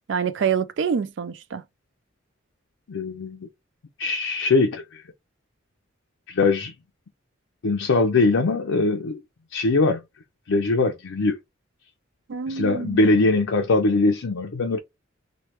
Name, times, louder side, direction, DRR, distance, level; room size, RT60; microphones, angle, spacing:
voice 1, 0.1-1.6 12.3-13.1, right 6 dB, 65° right, 0.4 m, -26 dB
voice 2, 2.9-3.5 4.0-5.0 6.3-6.7 7.6-9.2 9.5-10.0 10.5-11.4 12.5-14.8, left 3 dB, 80° left, 0.5 m, -21 dB
3.2 x 2.2 x 2.9 m
head